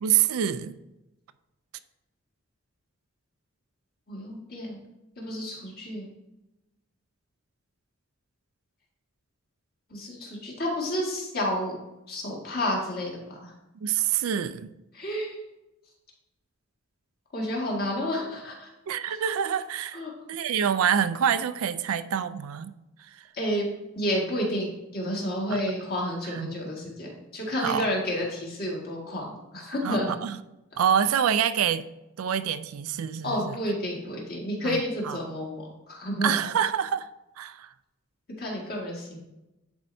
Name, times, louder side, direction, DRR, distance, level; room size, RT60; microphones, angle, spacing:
voice 1, 0.0-0.8 13.8-14.7 18.9-22.7 23.0-23.2 26.3-26.5 27.6-27.9 29.8-30.4 30.8-31.8 32.2-33.5 34.6-35.2 36.2-37.1 37.4-37.7, right 8 dB, 75° right, 13 dB, 0.4 m, -26 dB
voice 2, 4.1-4.8 5.2-6.1 9.9-11.8 12.1-13.5 14.9-15.4 17.3-18.7 19.9-20.1 23.3-23.7 24.0-30.1 33.2-36.4 38.4-39.2, equal, 45° left, -2 dB, 1.8 m, -30 dB
10.5 x 4.3 x 2.7 m, 0.96 s
head